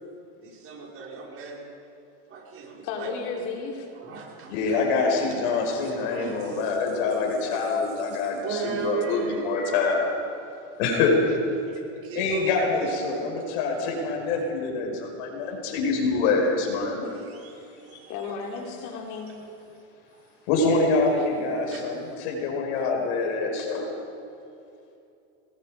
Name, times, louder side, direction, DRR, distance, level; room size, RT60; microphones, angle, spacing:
voice 1, 0.4-1.7 2.3-3.1 3.9-4.8 5.4-6.6 8.4-9.9 11.2-11.3 11.7-13.2 14.3-14.4 17.0-18.3 21.7-21.8, right 5 dB, 40° right, -2 dB, 5.3 m, -37 dB
voice 2, 2.8-3.9 18.1-19.3, left 5 dB, 55° left, 1 dB, 3.9 m, -33 dB
voice 3, 4.5-10.1 10.8-11.2 12.2-17.1 20.5-23.9, left 3 dB, 75° left, 2 dB, 5.7 m, -25 dB
26.5 x 20.5 x 5.2 m, 2.6 s
supercardioid pair, 125°, 34 cm